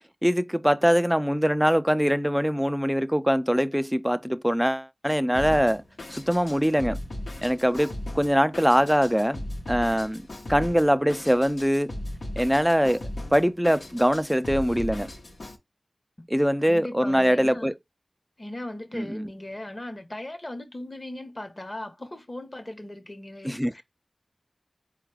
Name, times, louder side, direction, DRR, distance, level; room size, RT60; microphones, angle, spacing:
voice 1, 0.2-5.8 6.1-7.0 7.4-9.4 9.7-10.2 10.5-11.9 12.4-15.1 16.3-17.7 18.9-19.3 23.4-23.7, equal, 5° right, 0.4 m, -23 dB
Drum kit, 5.3-15.6, left 1 dB, 80° left, 1.0 m, -37 dB
voice 2, 16.6-17.7 18.4-23.8, left 1 dB, 40° left, 1.1 m, -38 dB
4.2 x 2.4 x 4.7 m
cardioid pair, 45°, 0 cm